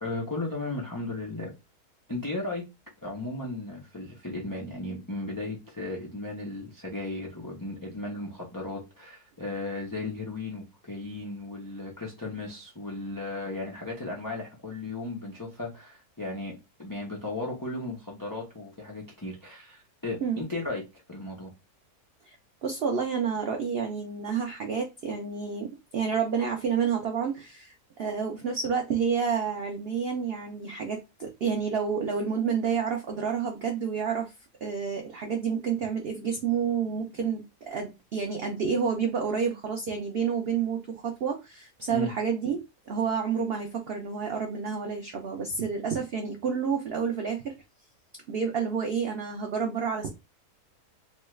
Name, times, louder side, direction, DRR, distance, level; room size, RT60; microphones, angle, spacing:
voice 1, 0.0-1.5 2.1-2.6 3.0-16.5 16.8-20.8 21.1-21.5 41.9-42.1, left 2 dB, 30° left, -2 dB, 0.4 m, -35 dB
voice 2, 22.6-34.3 34.6-47.5 48.3-50.1, right 6 dB, 85° right, 3 dB, 0.5 m, -29 dB
3.0 x 2.3 x 3.0 m, 0.24 s
omnidirectional pair, 1.7 m